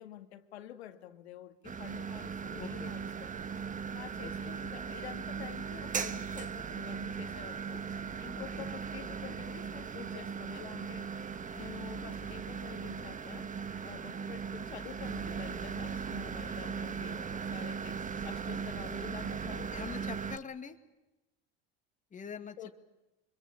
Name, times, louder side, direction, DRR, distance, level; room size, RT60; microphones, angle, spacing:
voice 1, 0.0-3.3 3.9-7.9 8.2-11.1 11.5-13.5 13.8-19.8 22.6-22.7, left 12 dB, 85° left, 1.9 m, -48 dB
sound 1, 1.6-20.4, right 6 dB, 25° right, 1.3 m, -38 dB
voice 2, 2.4-2.9 4.2-4.5 8.3-8.7 19.7-20.8 22.1-22.7, left 6 dB, 25° left, 2.2 m, -44 dB
24.5 x 22.5 x 8.6 m
hypercardioid pair, 95°, 31 cm